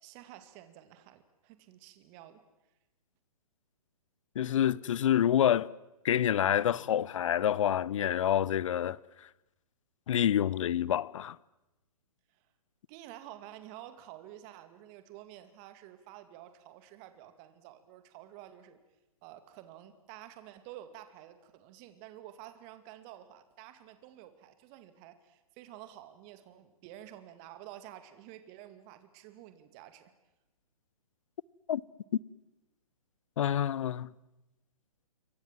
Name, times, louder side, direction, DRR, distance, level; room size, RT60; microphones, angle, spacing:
voice 1, 0.0-2.4 12.9-18.8 19.2-30.1, right 12 dB, 30° right, 2.3 m, -50 dB
voice 2, 4.3-5.7 6.0-9.0 10.1-11.4 31.7-31.8 33.4-34.1, left 10 dB, 55° left, 0.8 m, -27 dB
28.5 x 23.0 x 7.6 m
hypercardioid pair, 130°, 19 cm